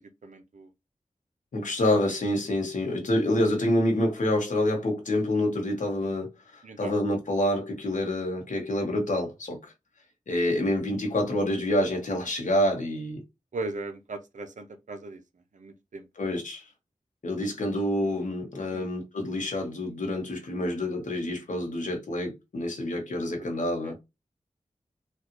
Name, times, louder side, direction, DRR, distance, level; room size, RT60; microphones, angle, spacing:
voice 1, 0.2-0.7 6.6-6.9 13.5-15.2 15.5-16.1 18.7-18.9 23.8-23.9, right 2 dB, 70° right, 0.6 m, -38 dB
voice 2, 1.5-9.7 10.3-13.2 16.2-16.6 17.2-24.0, left 1 dB, 75° left, 1.0 m, -27 dB
3.2 x 2.4 x 3.0 m
cardioid pair, 45°, 13 cm